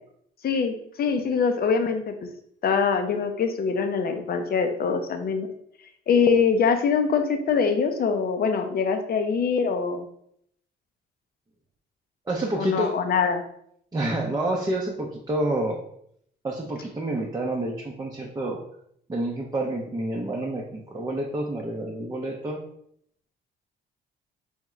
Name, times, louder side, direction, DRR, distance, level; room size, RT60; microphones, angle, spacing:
voice 1, 0.4-2.1 2.6-5.5 6.1-10.1 12.6-13.4, left 5 dB, 50° left, 6 dB, 0.6 m, -23 dB
voice 2, 12.3-12.9 13.9-15.8 16.4-18.6 19.1-22.6, right 1 dB, 20° right, -2 dB, 0.6 m, -28 dB
3.5 x 3.5 x 3.1 m, 0.70 s
cardioid pair, 90°, 20 cm